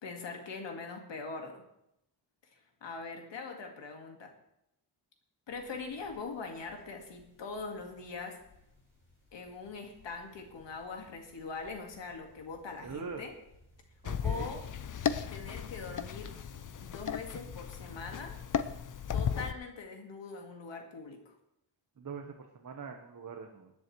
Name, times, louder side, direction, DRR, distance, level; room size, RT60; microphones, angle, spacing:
voice 1, 0.0-1.6 2.8-4.3 5.5-8.4 9.3-13.3 14.2-14.7 15.3-16.3 16.8-18.4 19.1-21.4, left 4 dB, 90° left, 3 dB, 2.0 m, -42 dB
sound 1, 5.5-19.5, left 2 dB, 25° left, 4.7 m, -62 dB
voice 2, 12.8-13.3 14.0-14.5 22.0-23.7, right 5 dB, 45° right, 3 dB, 1.2 m, -43 dB
sound 2, 14.1-19.5, left 7 dB, 45° left, 0.6 m, -35 dB
19.5 x 10.5 x 3.2 m, 0.81 s
wide cardioid pair, 130°, 43 cm